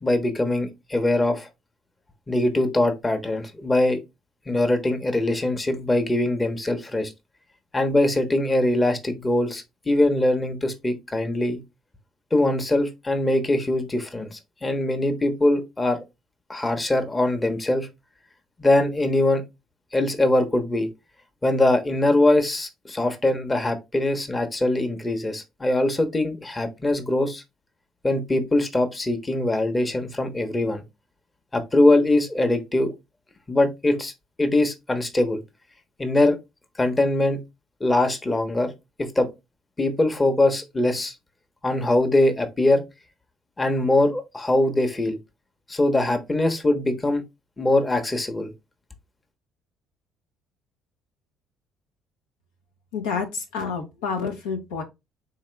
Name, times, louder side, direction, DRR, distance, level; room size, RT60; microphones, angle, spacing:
voice 1, 0.0-1.5 2.3-4.0 4.5-7.1 7.7-11.6 12.3-16.0 16.5-17.9 18.6-19.4 19.9-20.9 21.4-27.4 28.0-30.8 31.5-32.9 33.5-34.1 34.4-35.4 36.0-36.4 36.8-37.4 37.8-38.7 39.0-39.3 39.8-41.2 41.6-42.8 43.6-45.2 45.7-47.2 47.6-48.5, left 1 dB, 20° left, 0.9 m, -22 dB
voice 2, 52.9-54.8, left 5 dB, 85° left, 0.9 m, -29 dB
3.7 x 2.8 x 3.3 m
hypercardioid pair, 55°, 0 cm